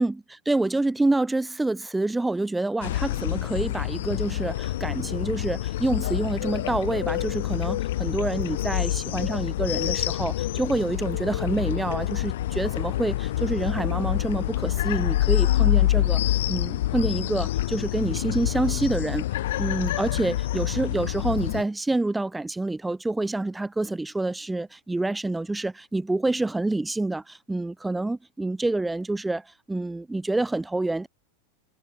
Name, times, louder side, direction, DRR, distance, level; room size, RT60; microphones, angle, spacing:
voice 1, 0.0-16.2 16.5-19.2 19.6-31.1, right 2 dB, 5° right, 1.0 m, -27 dB
sound 1, 2.8-21.6, left 14 dB, 55° left, 0.4 m, -27 dB
figure-of-eight pair, 90°, 0 cm